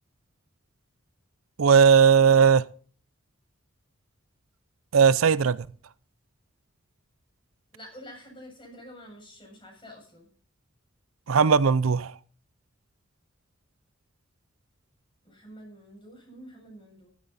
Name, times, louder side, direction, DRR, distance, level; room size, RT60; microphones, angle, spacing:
voice 1, 1.6-2.7 4.9-5.6 11.3-12.1, right 6 dB, 90° right, 0.5 m, -18 dB
voice 2, 7.7-10.3 15.2-17.1, equal, 25° left, 7.4 m, -47 dB
14.0 x 13.0 x 4.1 m
head